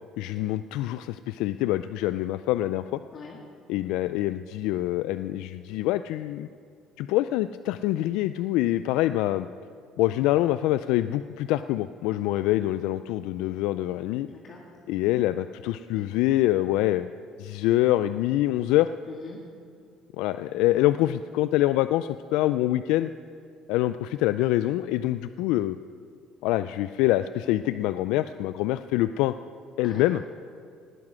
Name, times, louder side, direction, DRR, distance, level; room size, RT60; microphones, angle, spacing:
voice 1, 0.2-3.0 3.7-6.5 7.0-9.5 10.0-14.3 14.9-17.1 17.4-18.9 20.2-23.1 23.7-25.8 26.4-29.3 29.8-30.2, left 15 dB, 85° left, 12 dB, 0.3 m, -25 dB
voice 2, 14.3-14.7 19.1-19.5 29.8-30.2, left 4 dB, 50° left, -1 dB, 1.9 m, -43 dB
18.5 x 9.6 x 6.2 m, 2.3 s
cardioid pair, 100°, 0 cm